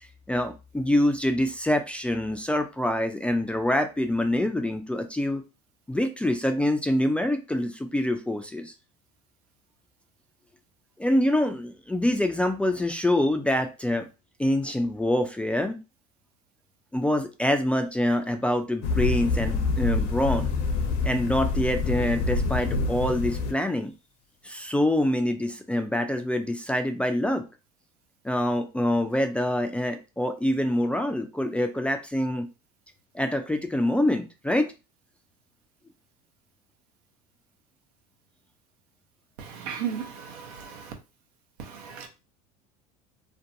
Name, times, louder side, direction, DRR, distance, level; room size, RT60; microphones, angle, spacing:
voice 1, 0.0-5.4 5.9-8.7 11.0-14.1 14.4-15.8 16.9-20.5 21.0-23.9 24.4-27.4 28.2-32.5 33.1-34.7, left 1 dB, 5° left, 0.3 m, -25 dB
sound 1, 18.8-23.5, left 3 dB, 60° left, 0.6 m, -26 dB
voice 2, 39.4-40.9 41.6-42.1, right 8 dB, 80° right, 0.7 m, -35 dB
2.5 x 2.2 x 2.6 m
hypercardioid pair, 95°, 20 cm